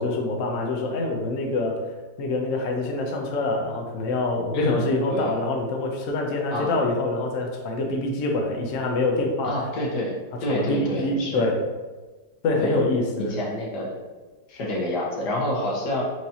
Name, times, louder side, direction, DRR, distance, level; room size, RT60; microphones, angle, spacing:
voice 1, 0.0-1.8 2.2-9.5 10.5-11.6 12.4-13.4, left 2 dB, 65° left, 1 dB, 0.8 m, -25 dB
voice 2, 4.5-5.3 6.5-6.7 9.4-10.1 10.4-11.5 12.6-12.8 13.3-13.9 14.5-16.0, left 1 dB, 80° left, -4 dB, 1.5 m, -28 dB
4.6 x 2.7 x 2.8 m, 1.3 s
omnidirectional pair, 1.8 m